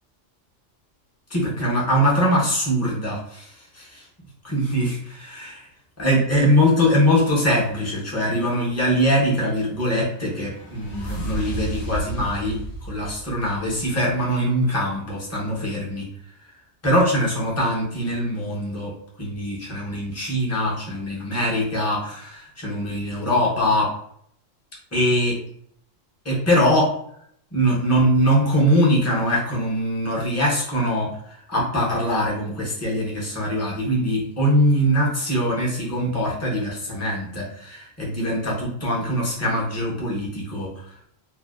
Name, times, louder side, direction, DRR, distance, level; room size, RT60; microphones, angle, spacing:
voice 1, 1.3-4.1 4.4-5.7 6.0-16.1 16.8-23.9 24.9-25.4 26.2-26.9 27.5-40.7, equal, 20° left, -5 dB, 0.4 m, -22 dB
sound 1, 9.4-14.2, right 1 dB, 55° left, 0.8 m, -34 dB
2.6 x 2.1 x 2.2 m, 0.69 s
omnidirectional pair, 1.3 m